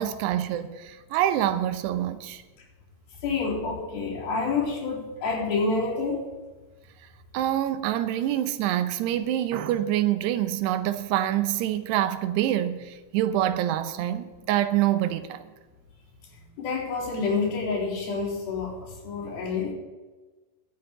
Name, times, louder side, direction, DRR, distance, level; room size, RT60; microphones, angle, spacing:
voice 1, 0.0-2.4 7.3-15.4, right 12 dB, 90° right, 3.0 m, -26 dB
voice 2, 3.2-6.3 16.6-19.7, left 4 dB, 60° left, 5.6 m, -28 dB
12.5 x 8.1 x 9.0 m
omnidirectional pair, 4.7 m